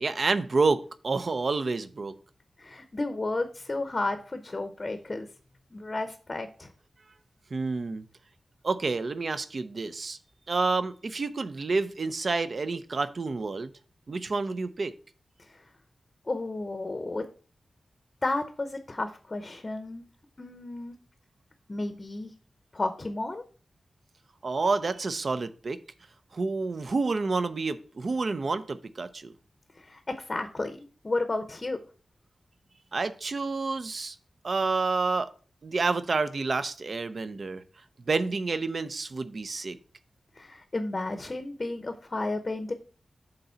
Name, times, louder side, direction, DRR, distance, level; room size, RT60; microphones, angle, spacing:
voice 1, 0.0-2.1 7.5-8.0 8.6-10.2 10.5-13.7 14.1-14.9 24.4-25.8 26.3-29.3 32.9-34.2 34.4-35.3 35.6-37.6 38.1-39.8, right 3 dB, 50° right, 0.6 m, -29 dB
voice 2, 2.6-5.3 5.7-6.7 15.5-15.6 16.2-17.2 18.2-20.0 20.4-21.0 21.7-22.3 22.7-23.4 29.8-30.8 31.0-31.8 40.4-42.7, left 2 dB, 30° left, 0.7 m, -32 dB
6.8 x 3.9 x 5.6 m
wide cardioid pair, 135°, 0 cm